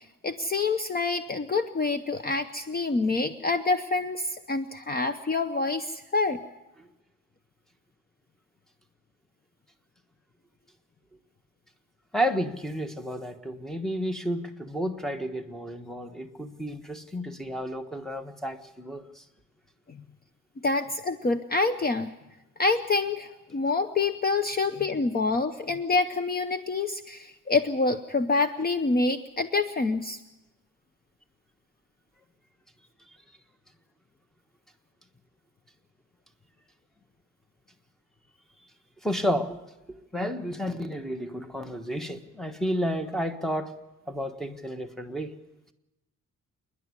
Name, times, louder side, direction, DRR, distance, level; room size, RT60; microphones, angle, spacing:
voice 1, 0.0-6.4 19.9-20.0 20.6-22.1 22.6-30.2, left 3 dB, 30° left, 9 dB, 0.8 m, -27 dB
voice 2, 12.1-19.2 39.0-39.6 39.9-43.7 44.1-45.3, equal, ahead, 7 dB, 1.3 m, -31 dB
27.0 x 11.0 x 9.8 m, 1.0 s
cardioid pair, 140°, 33 cm